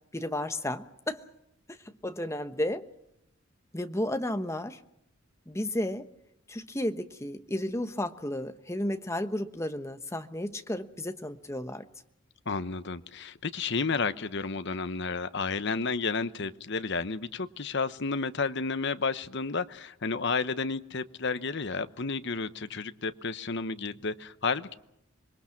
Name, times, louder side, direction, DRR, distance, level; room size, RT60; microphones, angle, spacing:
voice 1, 0.1-1.2 1.7-1.8 2.0-2.9 3.7-4.8 5.5-6.1 6.5-11.9, left 1 dB, 15° left, 1.1 m, -33 dB
voice 2, 12.5-24.7, left 4 dB, 55° left, 1.0 m, -31 dB
26.5 x 22.0 x 5.9 m
head